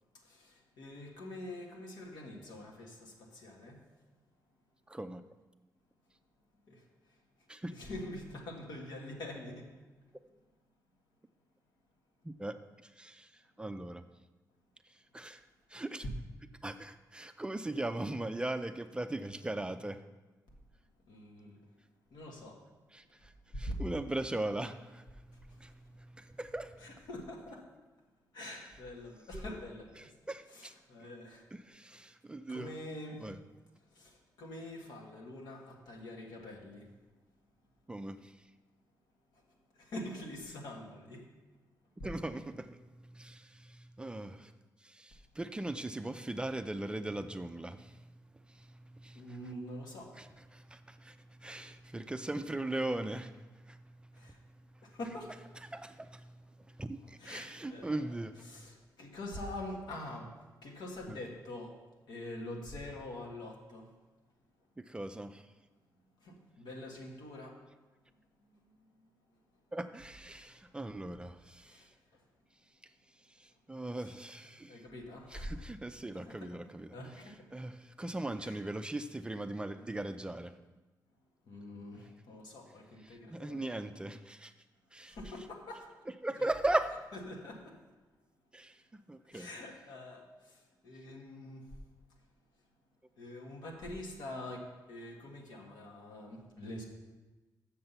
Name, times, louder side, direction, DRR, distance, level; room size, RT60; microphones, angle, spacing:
voice 1, 0.1-3.8 6.7-7.2 7.7-9.7 21.1-21.6 22.1-22.6 23.5-23.7 25.3-25.6 26.8-27.6 28.3-30.1 30.5-31.4 32.5-33.3 33.9-36.9 39.3-39.4 39.7-41.3 42.0-42.1 49.1-50.1 54.1-54.4 54.8-55.3 57.2-58.1 58.4-60.3 60.6-61.7 62.1-63.9 66.2-67.6 68.5-68.7 69.0-69.1 70.3-70.8 71.6-72.2 73.9-74.1 74.6-75.5 76.1-76.5 76.9-77.5 78.4-78.6 81.5-83.6 85.0-85.9 87.1-87.8 89.3-91.7 93.2-96.8, left 1 dB, 85° left, 0 dB, 1.5 m, -45 dB
voice 2, 4.9-5.2 7.5-7.7 12.2-14.0 14.9-15.4 15.7-16.0 16.6-20.0 22.9-27.0 28.4-28.6 30.0-30.7 31.5-32.7 33.2-33.4 37.9-38.3 42.0-44.5 44.8-49.5 50.1-55.0 55.6-58.4 61.1-61.2 64.8-65.5 69.7-71.9 73.3-74.8 75.3-76.9 77.5-80.6 83.0-84.5 84.9-85.2 86.2-87.0 88.5-89.5, right 2 dB, 15° right, 9 dB, 0.3 m, -39 dB
6.7 x 6.7 x 5.7 m, 1.2 s
cardioid pair, 115°, 7 cm